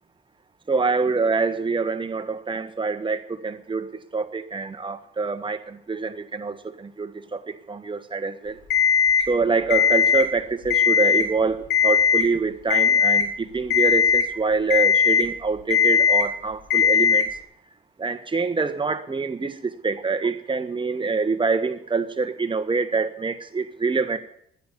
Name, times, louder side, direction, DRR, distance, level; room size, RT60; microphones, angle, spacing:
voice 1, 0.7-8.6 9.3-17.3 18.0-24.2, right 4 dB, 25° right, 8 dB, 1.5 m, -26 dB
Alarm, 8.7-9.3 9.7-10.3 10.6-11.3 11.7-12.3 12.7-13.3 13.7-14.3 14.7-15.3 15.7-16.3 16.7-17.3, left 7 dB, 65° left, 3.5 m, -18 dB
12.5 x 10.0 x 8.4 m, 0.70 s
cardioid pair, 90°, 20 cm